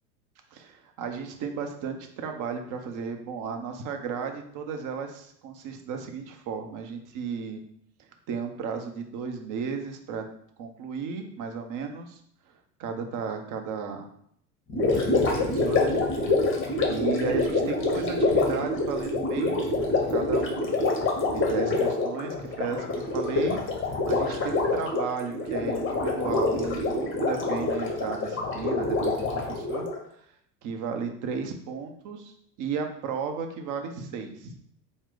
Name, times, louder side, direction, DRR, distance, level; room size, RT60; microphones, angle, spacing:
voice 1, 0.5-7.6 8.3-10.2 10.6-12.2 12.8-14.1 15.3-16.0 16.5-16.6 16.9-20.7 21.3-23.6 24.1-29.9 30.6-34.6, right 6 dB, 40° right, 5 dB, 0.7 m, -34 dB
Gurgling, 14.7-30.0, left 2 dB, 25° left, 1.0 m, -26 dB
4.5 x 2.1 x 3.8 m, 0.68 s
hypercardioid pair, 90°, 48 cm